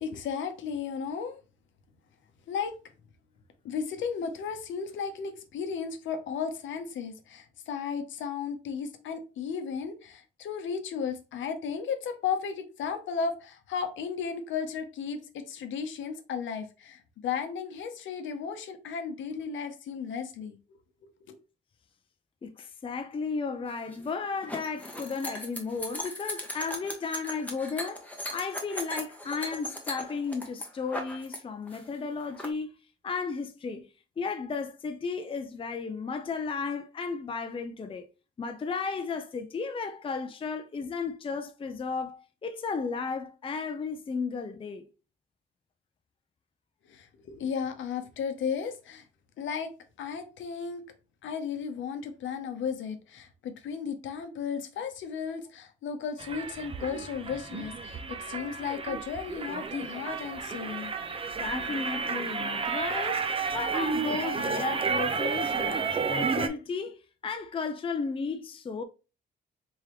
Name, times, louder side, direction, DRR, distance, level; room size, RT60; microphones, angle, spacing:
voice 1, 0.0-1.4 2.5-2.8 3.6-20.6 21.3-21.4 46.9-49.1 49.4-49.7 50.0-50.8 51.2-60.9, left 6 dB, 70° left, 0.8 m, -34 dB
voice 2, 22.4-32.7 33.0-33.9 34.2-38.0 38.4-44.9 61.4-68.8, left 4 dB, 25° left, 0.5 m, -34 dB
sound 1, 23.7-31.4 31.7-32.5, left 1 dB, 10° left, 1.0 m, -38 dB
sound 2, 56.2-66.5, right 5 dB, 30° right, 0.5 m, -31 dB
3.6 x 3.3 x 3.1 m
cardioid pair, 90°, 20 cm